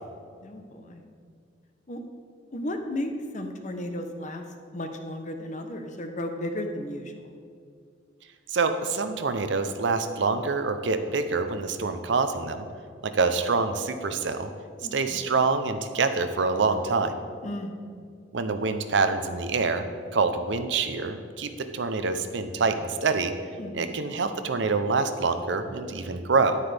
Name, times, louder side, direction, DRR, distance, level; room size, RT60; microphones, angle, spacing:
voice 1, 0.4-1.1 1.9-2.0 2.5-4.5 4.7-7.4 14.8-15.2 17.4-17.7 23.6-24.0, left 1 dB, 40° left, 5 dB, 0.8 m, -34 dB
voice 2, 8.5-12.7 13.0-14.5 14.9-17.2 18.3-19.9 20.1-23.3 23.7-26.6, right 4 dB, 70° right, 9 dB, 0.6 m, -26 dB
10.0 x 9.5 x 3.4 m, 2.2 s
head